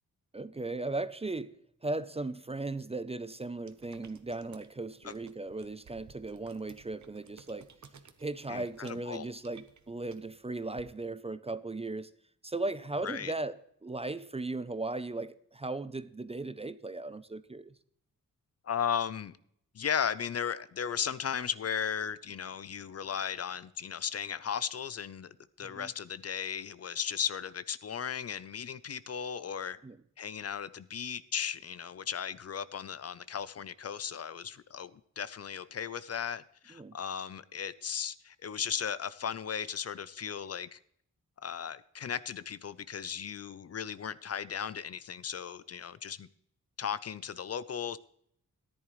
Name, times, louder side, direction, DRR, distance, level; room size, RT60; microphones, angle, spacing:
voice 1, 0.3-1.6 1.8-7.7 8.2-12.1 12.4-17.7 25.7-25.9 29.8-30.0 36.7-37.0, right 2 dB, 20° right, 0.4 m, -37 dB
sound 1, 3.6-10.8, right 6 dB, 60° right, 1.0 m, -57 dB
voice 2, 8.5-9.3 13.0-13.3 18.6-19.4 19.7-29.8 30.2-40.8 41.4-46.3 46.8-48.0, left 7 dB, 50° left, 0.5 m, -36 dB
14.0 x 10.5 x 3.1 m
wide cardioid pair, 100°, 33 cm